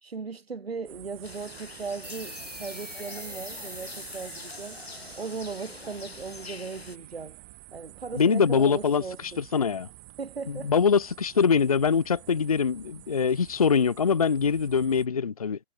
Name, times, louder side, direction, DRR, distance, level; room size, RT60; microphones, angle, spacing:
voice 1, 0.0-4.8 5.2-7.4 7.7-9.4 10.2-10.7, right 5 dB, 55° right, 4.2 m, -38 dB
sound 1, 0.8-15.1, right 24 dB, 20° right, 3.5 m, -49 dB
sound 2, 1.2-7.0, left 4 dB, 55° left, 4.4 m, -45 dB
sound 3, 2.0-7.2, right 1 dB, 90° right, 5.8 m, -44 dB
voice 2, 8.1-9.9 10.5-15.6, left 6 dB, 30° left, 0.7 m, -23 dB
figure-of-eight pair, 145°, 36 cm